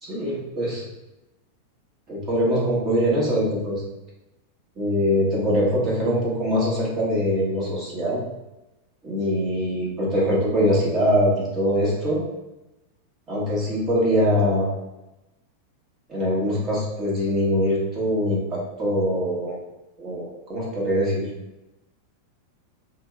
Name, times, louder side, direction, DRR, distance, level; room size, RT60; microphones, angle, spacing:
voice 1, 0.0-0.8 2.1-3.8 4.8-8.2 9.0-12.2 13.3-14.7 16.1-19.5 20.0-20.2 20.5-21.3, equal, 25° right, -5 dB, 1.3 m, -23 dB
4.2 x 2.0 x 3.5 m, 0.97 s
figure-of-eight pair, 90°, 0 cm